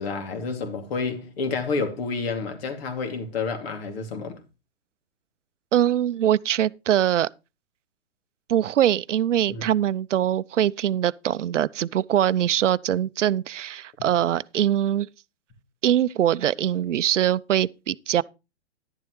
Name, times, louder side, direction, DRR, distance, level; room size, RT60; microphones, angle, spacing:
voice 1, 0.0-4.4 9.5-9.7 14.0-14.1, left 4 dB, 55° left, 2.8 m, -29 dB
voice 2, 5.7-7.3 8.5-15.1 15.8-18.2, right 11 dB, 85° right, 0.6 m, -22 dB
11.0 x 10.5 x 3.2 m
hypercardioid pair, 130°, 36 cm